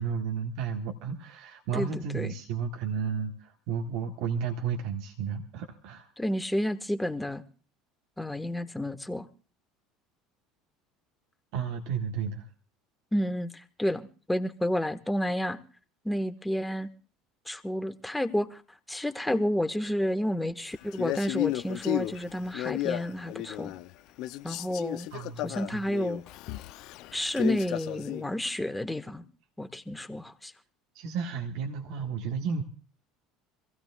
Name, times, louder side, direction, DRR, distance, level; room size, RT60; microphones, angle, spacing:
voice 1, 0.0-6.1 11.5-12.5 25.1-25.8 30.9-32.6, right 6 dB, 65° right, 1.6 m, -33 dB
voice 2, 1.7-2.3 6.2-7.4 8.2-9.3 13.1-15.6 16.0-16.9 17.5-18.6 18.9-23.7 24.4-25.1 25.4-26.2 27.1-29.2 29.6-30.5, equal, 5° left, 1.6 m, -30 dB
Male speech man speaking, 20.9-23.9 24.2-28.3, left 16 dB, 60° left, 0.6 m, -33 dB
26.0 x 16.0 x 2.4 m
hypercardioid pair, 70°, 0 cm